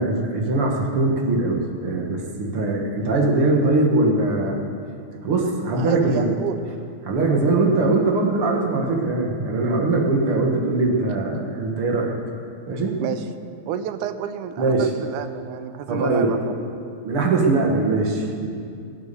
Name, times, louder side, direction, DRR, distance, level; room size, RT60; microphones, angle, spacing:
voice 1, 0.0-4.6 5.2-6.3 7.1-12.1 12.7-13.0 14.6-14.9 15.9-16.3 17.0-18.5, right 2 dB, 50° right, -1 dB, 2.0 m, -21 dB
voice 2, 5.7-6.6 13.0-13.3 13.7-16.6, right 9 dB, 75° right, 10 dB, 2.0 m, -30 dB
19.0 x 8.4 x 6.8 m, 2.4 s
omnidirectional pair, 3.8 m